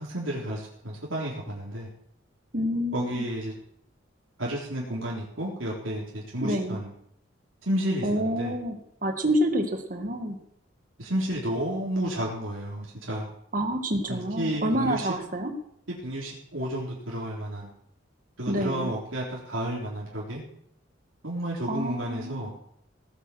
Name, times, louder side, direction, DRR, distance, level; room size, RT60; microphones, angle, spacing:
voice 1, 0.0-1.9 2.9-3.6 4.4-6.9 7.7-8.5 11.0-13.3 14.1-15.1 16.0-17.7 18.4-20.4 21.2-22.5, right 1 dB, 90° right, -5 dB, 3.9 m, -31 dB
voice 2, 2.5-3.2 6.4-6.8 8.0-10.4 13.5-15.5 18.5-18.9 21.7-22.5, equal, 45° right, 5 dB, 2.0 m, -28 dB
18.0 x 8.3 x 6.4 m, 0.72 s
head